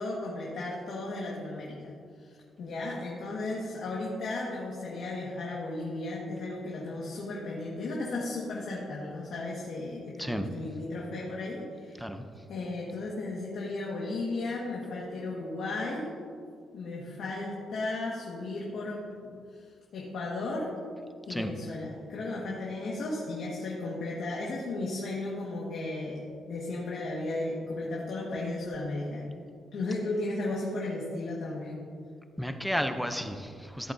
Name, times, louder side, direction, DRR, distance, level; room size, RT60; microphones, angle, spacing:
voice 1, 0.0-12.0 12.5-16.1 16.7-20.7 21.3-26.2 26.5-29.2 29.7-31.8, left 2 dB, 60° left, -4 dB, 1.5 m, -35 dB
voice 2, 10.2-10.5 12.0-12.2 21.3-21.5 32.4-33.9, equal, ahead, 7 dB, 0.5 m, -32 dB
15.0 x 8.4 x 2.7 m, 2.2 s
cardioid pair, 140°, 0 cm